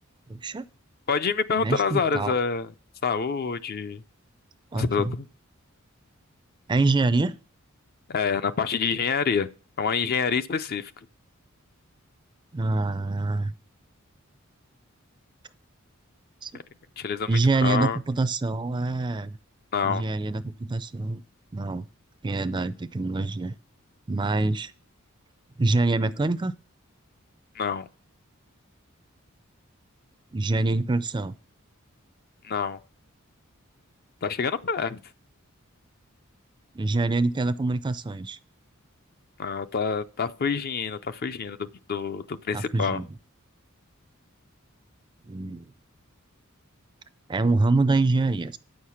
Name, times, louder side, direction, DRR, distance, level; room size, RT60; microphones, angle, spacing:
voice 1, 0.3-0.6 1.6-2.3 4.7-5.1 6.7-7.3 12.5-13.5 16.4-16.5 17.3-19.4 19.8-21.2 21.5-21.9 22.2-23.5 24.1-24.7 25.6-26.5 30.3-31.3 36.7-38.4 42.5-43.1 45.3-45.7 47.3-48.6, right 3 dB, 20° right, 0.4 m, -25 dB
voice 2, 1.1-2.7 3.0-4.0 4.7-5.2 8.1-9.5 9.8-10.9 17.0-17.3 17.6-18.0 19.7-20.0 27.6-27.9 32.4-32.8 34.2-35.0 39.4-43.0, left 5 dB, 45° left, 0.5 m, -27 dB
9.1 x 6.6 x 5.7 m
head